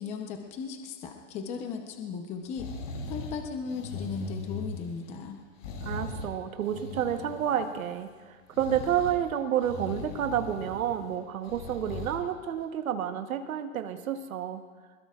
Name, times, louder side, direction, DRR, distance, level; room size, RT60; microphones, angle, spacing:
voice 1, 0.0-2.7 3.1-5.4, left 5 dB, 15° left, 4 dB, 0.8 m, -36 dB
sound 1, 2.6-3.4 3.7-5.1 5.6-6.3 6.6-8.0 8.5-9.2 9.6-11.0 11.5-12.2 12.6-12.7, left 3 dB, 65° left, 3.8 m, -39 dB
voice 2, 5.8-14.6, right 9 dB, 85° right, 7 dB, 1.3 m, -30 dB
21.5 x 21.0 x 2.5 m, 1.5 s
hypercardioid pair, 155°, 41 cm